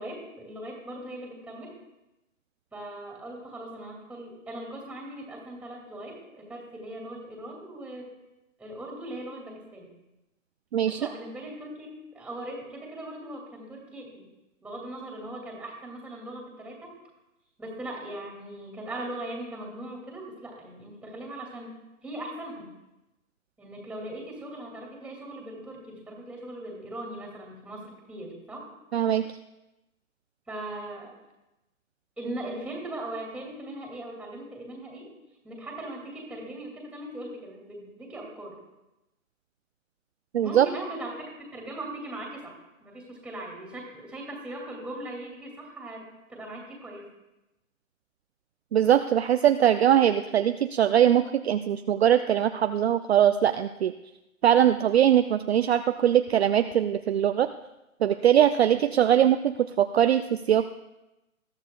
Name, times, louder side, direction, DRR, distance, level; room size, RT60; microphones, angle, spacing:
voice 1, 0.0-1.7 2.7-8.1 8.6-9.9 10.9-14.2 14.6-16.9 17.6-22.7 23.6-28.7 30.5-31.1 32.2-35.1 35.4-38.6 40.4-47.1, right 1 dB, 5° right, 0 dB, 2.3 m, -39 dB
voice 2, 28.9-29.3 40.3-40.7 48.7-53.9 54.4-57.5 58.0-60.7, right 10 dB, 50° right, 8 dB, 0.5 m, -21 dB
20.5 x 13.0 x 2.3 m, 0.95 s
hypercardioid pair, 145°, 41 cm